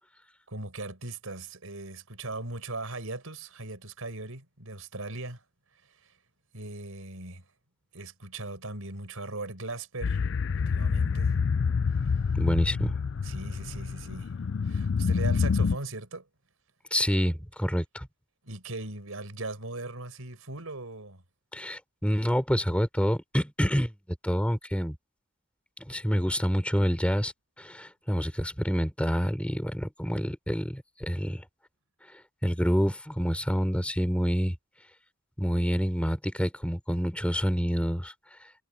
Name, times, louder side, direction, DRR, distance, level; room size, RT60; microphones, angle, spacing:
voice 1, 0.5-5.4 6.0-6.1 6.5-7.4 7.9-11.4 12.0-12.1 13.2-14.3 14.6-16.3 18.4-21.2, right 2 dB, 90° right, 4.7 m, -39 dB
sound 1, 10.0-15.8, left 5 dB, 55° left, 0.4 m, -27 dB
voice 2, 12.4-13.0 16.9-18.1 21.5-23.9 24.2-25.0 25.9-27.3 27.6-31.4 32.4-34.5 35.4-38.1, equal, 5° left, 4.0 m, -27 dB
head